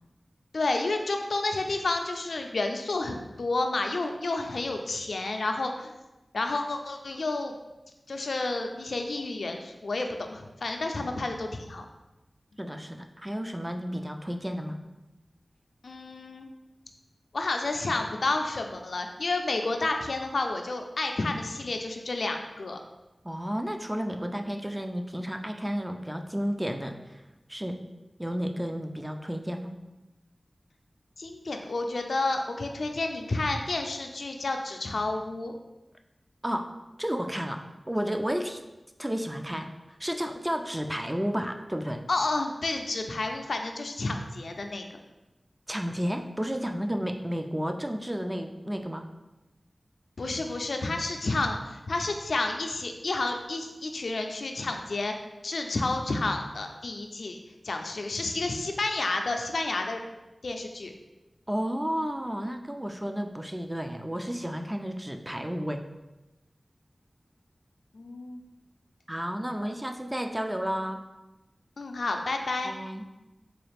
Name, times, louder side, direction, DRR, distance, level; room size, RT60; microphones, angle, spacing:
voice 1, 0.5-5.9 6.3-7.5 8.1-11.9 15.8-16.5 17.3-22.8 31.2-35.5 42.1-44.8 50.2-55.1 55.4-57.4 57.6-60.0 60.4-60.9 67.9-68.4 71.8-72.7, left 2 dB, 85° left, 4 dB, 0.3 m, -30 dB
voice 2, 12.6-14.8 23.2-27.2 27.5-27.8 28.2-29.7 36.4-38.6 39.0-42.0 45.7-49.1 61.5-65.8 69.1-71.0 72.6-73.0, equal, 15° right, 5 dB, 0.3 m, -32 dB
3.9 x 2.4 x 3.3 m, 1.0 s
wide cardioid pair, 55°, 0 cm